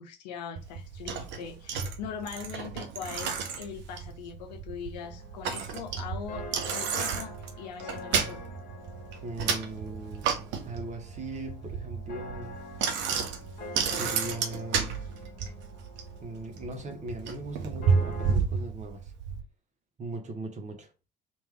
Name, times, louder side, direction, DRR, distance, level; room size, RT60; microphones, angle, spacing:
voice 1, 0.0-6.4 6.7-8.4, left 7 dB, 75° left, 0.7 m, -41 dB
Bicycle, 0.6-19.4, right 6 dB, 60° right, 0.8 m, -32 dB
sound 1, 5.0-18.3, left 2 dB, 45° left, 1.3 m, -46 dB
voice 2, 9.2-12.6 13.8-15.0 16.2-19.1 20.0-20.9, right 2 dB, 35° right, 1.1 m, -39 dB
3.3 x 2.6 x 3.4 m
hypercardioid pair, 55°, 21 cm